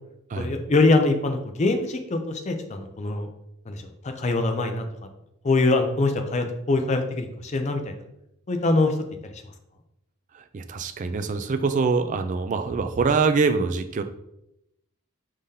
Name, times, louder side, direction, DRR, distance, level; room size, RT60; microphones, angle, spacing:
voice 1, 0.3-3.3 3.7-4.8 5.4-8.0 8.5-8.9, left 2 dB, 30° left, 6 dB, 0.4 m, -23 dB
voice 2, 10.3-14.0, right 4 dB, 35° right, 8 dB, 0.3 m, -24 dB
4.9 x 3.7 x 2.7 m, 0.82 s
head